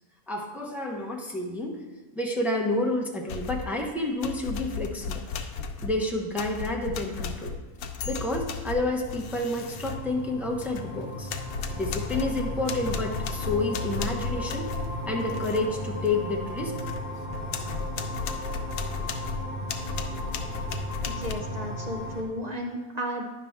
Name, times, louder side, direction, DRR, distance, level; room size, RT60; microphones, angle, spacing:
voice 1, 0.3-1.8 2.1-5.2 5.8-7.5 8.0-11.3 11.7-14.7 15.1-16.8, left 2 dB, ahead, 0 dB, 0.5 m, -29 dB
sound 1, 3.3-3.8 4.2-10.9 11.3-15.7 16.1-16.2 16.6-21.3, left 5 dB, 85° left, 1.1 m, -35 dB
sound 2, 7.9-22.2, equal, 30° right, 1.7 m, -36 dB
voice 2, 21.2-23.3, equal, 45° right, 1 dB, 0.5 m, -33 dB
9.8 x 5.9 x 3.5 m, 1.1 s
omnidirectional pair, 1.5 m